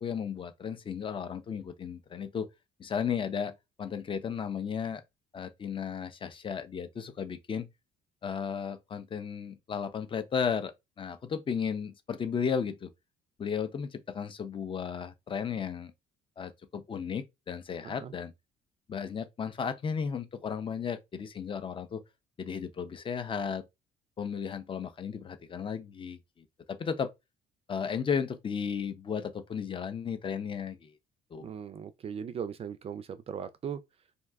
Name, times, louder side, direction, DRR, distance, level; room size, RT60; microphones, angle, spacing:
voice 1, 0.0-2.5 2.8-5.0 5.3-7.7 8.2-12.9 13.4-15.9 16.4-18.3 18.9-22.0 22.4-23.6 24.2-26.2 26.7-27.1 27.7-30.9 31.3-31.5, left 7 dB, 30° left, 0.5 m, -34 dB
voice 2, 31.4-33.8, right 7 dB, 35° right, 0.3 m, -38 dB
2.6 x 2.3 x 3.3 m
cardioid pair, 110°, 17 cm